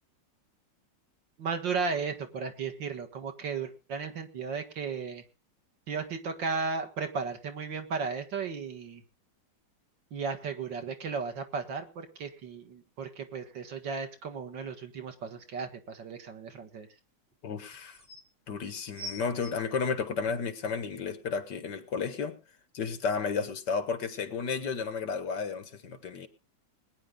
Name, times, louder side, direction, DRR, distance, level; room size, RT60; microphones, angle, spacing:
voice 1, 1.4-5.2 5.9-9.0 10.1-16.9, right 5 dB, 80° right, 2.4 m, -35 dB
sound 1, 17.3-17.4 17.7-18.2 18.9-20.6 21.3-21.4, equal, 5° left, 3.6 m, -44 dB
voice 2, 17.4-18.0 18.5-22.4 22.7-26.3, left 5 dB, 70° left, 2.0 m, -32 dB
21.0 x 9.8 x 3.8 m
omnidirectional pair, 2.0 m